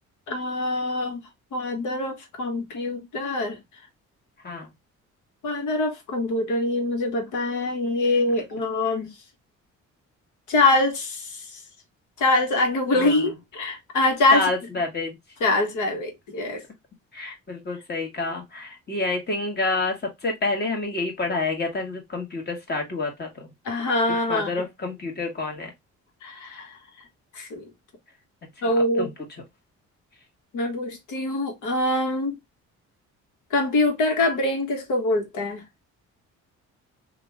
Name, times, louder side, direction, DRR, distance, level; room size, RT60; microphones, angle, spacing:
voice 1, 0.3-1.2 1.5-3.6 5.4-9.1 10.5-11.4 12.2-14.5 15.4-16.6 23.6-24.5 26.2-26.7 27.3-27.6 28.6-29.1 30.5-32.4 33.5-35.6, left 2 dB, 80° left, 1.3 m, -24 dB
voice 2, 14.3-15.2 17.1-19.9 20.2-23.5 24.1-25.7 29.0-29.1, left 3 dB, 35° left, 1.5 m, -28 dB
3.1 x 2.5 x 3.3 m
cardioid pair, 90°, 30 cm